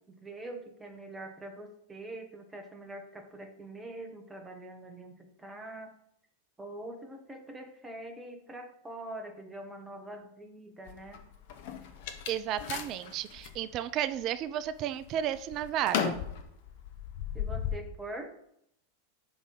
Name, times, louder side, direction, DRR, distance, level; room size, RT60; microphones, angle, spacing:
voice 1, 0.0-5.9 6.6-11.2 17.3-18.6, right 1 dB, 10° right, 4 dB, 0.8 m, -44 dB
sound 1, 10.9-13.6 14.1-14.7 15.0-17.8, left 8 dB, 50° left, 0.7 m, -36 dB
voice 2, 12.3-16.2, right 11 dB, 35° right, 13 dB, 0.3 m, -33 dB
5.3 x 3.9 x 4.8 m, 0.73 s
figure-of-eight pair, 90°, 0 cm